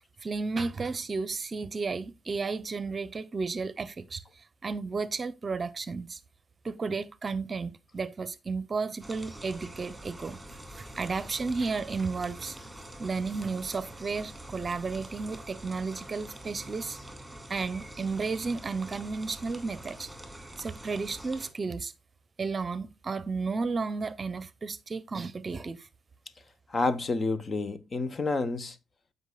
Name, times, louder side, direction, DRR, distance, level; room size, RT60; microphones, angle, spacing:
voice 1, 0.2-4.2 4.6-6.2 6.6-10.4 10.7-12.6 13.0-17.0 17.5-20.1 20.6-21.9 22.4-25.9, right 4 dB, 35° right, 0.7 m, -33 dB
sound 1, 9.0-21.5, right 1 dB, 5° right, 2.4 m, -45 dB
voice 2, 26.7-28.8, left 3 dB, 35° left, 1.0 m, -29 dB
14.0 x 5.5 x 2.3 m
cardioid pair, 90°, 0 cm